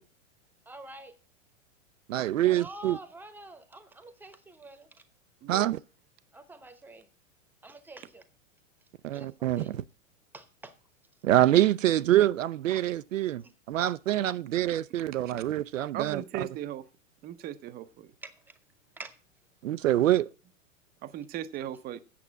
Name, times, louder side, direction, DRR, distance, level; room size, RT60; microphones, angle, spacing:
voice 1, 0.7-1.1 2.5-4.9 6.3-7.1 7.6-8.2 9.1-9.7 10.3-10.7 13.4-13.5 18.2-18.3 19.0-19.1, right 2 dB, 5° right, 1.0 m, -46 dB
voice 2, 2.1-3.0 5.5-5.8 9.0-9.8 11.2-16.5 19.6-20.3, right 13 dB, 75° right, 0.5 m, -25 dB
voice 3, 15.9-16.9 17.2-18.1 21.0-22.0, right 11 dB, 25° right, 0.6 m, -38 dB
8.6 x 6.9 x 7.5 m
hypercardioid pair, 105°, 39 cm